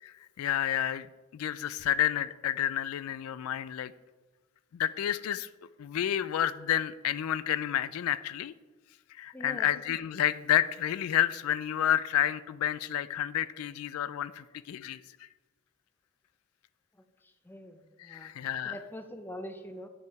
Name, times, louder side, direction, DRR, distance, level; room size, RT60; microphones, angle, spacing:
voice 1, 0.0-1.1 1.3-3.9 4.7-5.5 5.8-8.5 9.1-15.3 18.0-18.8, left 11 dB, 80° left, 17 dB, 0.3 m, -30 dB
voice 2, 9.3-9.7 17.5-18.3 18.6-19.9, left 1 dB, 10° left, 7 dB, 0.6 m, -43 dB
8.9 x 5.3 x 4.7 m, 1.2 s
head